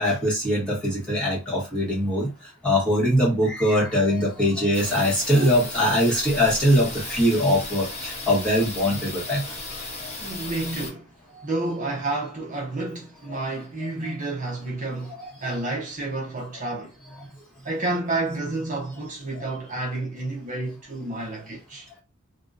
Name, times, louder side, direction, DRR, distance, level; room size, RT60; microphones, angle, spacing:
voice 1, 0.0-2.3 2.6-9.6 10.0-10.1 11.3-11.5 13.3-13.4 13.8-13.9 15.2-15.3 19.3-19.5, equal, 5° left, 1.1 m, -22 dB
sound 1, 4.7-10.9, left 2 dB, 30° left, 0.7 m, -35 dB
voice 2, 10.2-11.1 11.4-16.9 17.6-21.9, right 2 dB, 40° right, 0.6 m, -30 dB
2.6 x 2.2 x 2.4 m
head